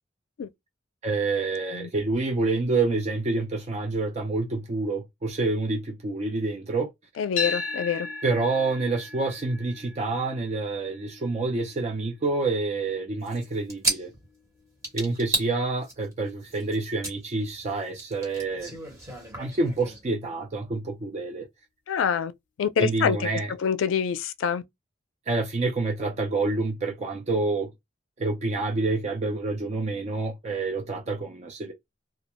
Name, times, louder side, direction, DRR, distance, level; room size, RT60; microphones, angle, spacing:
voice 1, 1.0-6.9 8.2-14.1 14.9-18.7 19.4-21.5 22.8-23.5 25.3-27.7 28.2-31.7, right 3 dB, 35° right, 0.4 m, -28 dB
voice 2, 7.2-8.1 21.9-22.3 22.6-23.3 23.6-24.6, left 7 dB, 90° left, 0.3 m, -26 dB
sound 1, 7.4-15.5, left 4 dB, 40° left, 0.6 m, -38 dB
sound 2, 13.2-14.4 14.8-15.5 15.8-17.1 17.4-20.0, right 2 dB, 15° right, 1.1 m, -32 dB
2.3 x 2.1 x 2.9 m
head